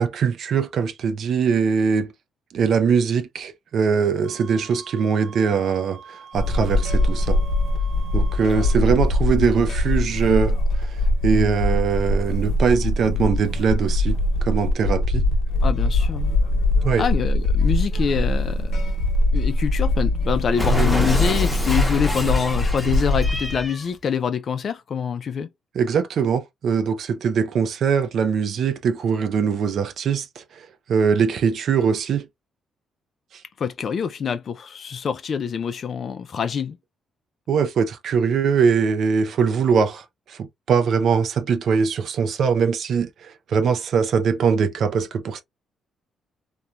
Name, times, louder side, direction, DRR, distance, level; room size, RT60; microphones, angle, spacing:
voice 1, 0.0-2.1 2.5-7.4 8.1-15.3 16.8-17.0 25.7-32.3 33.3-33.4 37.5-45.4, right 6 dB, 65° right, 0.4 m, -22 dB
sound 1, 4.2-8.8, right 6 dB, 90° right, 0.7 m, -44 dB
sound 2, 6.3-23.7, left 1 dB, 70° left, 0.9 m, -22 dB
voice 2, 15.6-16.4 17.0-18.8 19.3-25.5 33.6-36.8, left 7 dB, 50° left, 0.3 m, -25 dB
Cat, 20.6-23.9, left 1 dB, 10° left, 0.9 m, -28 dB
3.0 x 2.2 x 2.3 m
cardioid pair, 90°, 0 cm